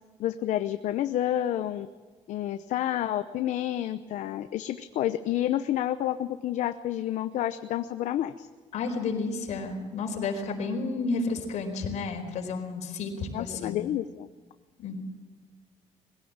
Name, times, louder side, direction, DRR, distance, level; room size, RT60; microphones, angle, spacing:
voice 1, 0.2-1.9 2.3-8.5 13.3-14.3, left 12 dB, 90° left, 10 dB, 0.8 m, -29 dB
voice 2, 8.7-13.8 14.8-15.0, left 3 dB, 75° left, 3 dB, 4.4 m, -31 dB
21.5 x 16.5 x 8.9 m, 1.4 s
cardioid pair, 165°, 12 cm